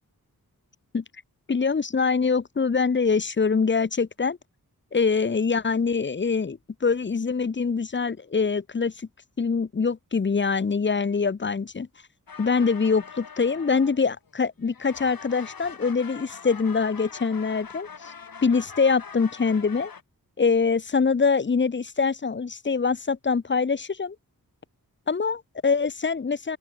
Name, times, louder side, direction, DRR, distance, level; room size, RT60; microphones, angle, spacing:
voice 1, 1.5-4.4 4.9-9.1 9.4-11.9 12.4-18.1 18.4-19.9 20.4-24.2 25.1-26.6, left 5 dB, 35° left, 0.7 m, -24 dB
sound 1, 12.3-14.4 14.6-20.0, left 6 dB, 80° left, 2.5 m, -43 dB
open air
wide cardioid pair, 90°, 35 cm